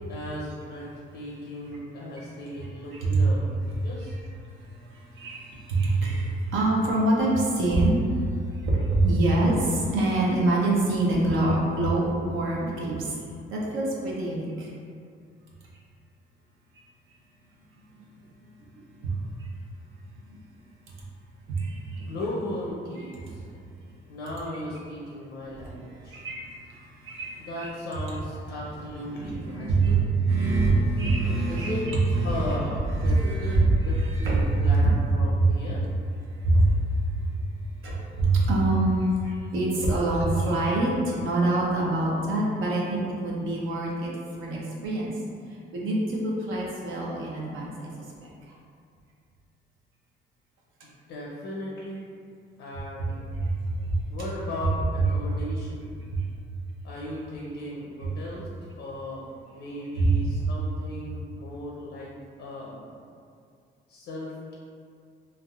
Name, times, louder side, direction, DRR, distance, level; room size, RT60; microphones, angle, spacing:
voice 1, 0.1-0.9 1.1-3.4 3.8-4.2 22.0-23.4 24.1-26.2 27.4-30.0 31.5-31.9 32.2-35.8 50.8-52.0 52.6-53.1 54.1-56.3 56.8-58.5 58.8-59.3 59.5-62.1 62.4-62.9 63.9-64.5, left 1 dB, 80° left, -5 dB, 0.6 m, -36 dB
voice 2, 2.9-3.2 4.0-8.3 8.6-13.2 13.5-14.7 18.7-19.5 20.3-20.4 21.5-22.1 23.0-23.5 25.9-27.7 29.1-32.6 32.9-35.0 35.4-35.6 36.3-36.9 37.1-37.3 37.8-44.1 44.4-45.1 45.7-47.9 48.2-48.3 53.3-54.0 56.1-56.3 60.0-60.3, right 2 dB, 85° right, -4 dB, 0.6 m, -25 dB
3.3 x 2.4 x 2.3 m, 2.3 s
cardioid pair, 90°, 20 cm